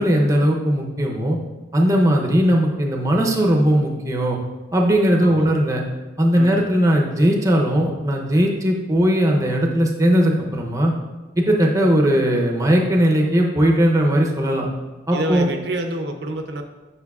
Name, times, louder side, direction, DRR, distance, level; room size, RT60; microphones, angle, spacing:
voice 1, 0.0-1.4 1.7-4.4 4.7-5.8 6.2-10.9 11.4-14.7 15.1-15.5, equal, 15° right, 1 dB, 0.6 m, -18 dB
voice 2, 15.1-16.6, right 1 dB, 60° right, 5 dB, 0.5 m, -27 dB
8.2 x 5.6 x 2.3 m, 1.2 s
head